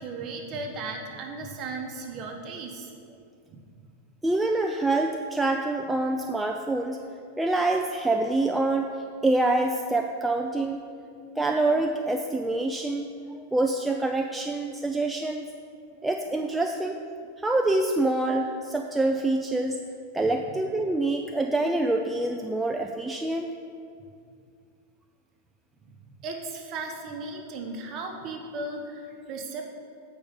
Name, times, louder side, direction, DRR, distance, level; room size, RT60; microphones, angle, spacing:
voice 1, 0.0-2.9 3.5-3.6 25.9-26.0 26.2-29.7, right 3 dB, 35° right, 1 dB, 1.2 m, -36 dB
voice 2, 4.2-7.0 7.4-9.0 9.2-10.8 11.4-13.1 13.5-15.4 16.0-17.0 17.4-19.8 20.1-23.5, right 2 dB, 5° right, 3 dB, 0.3 m, -26 dB
8.3 x 5.2 x 5.3 m, 2.4 s
supercardioid pair, 135°, 0 cm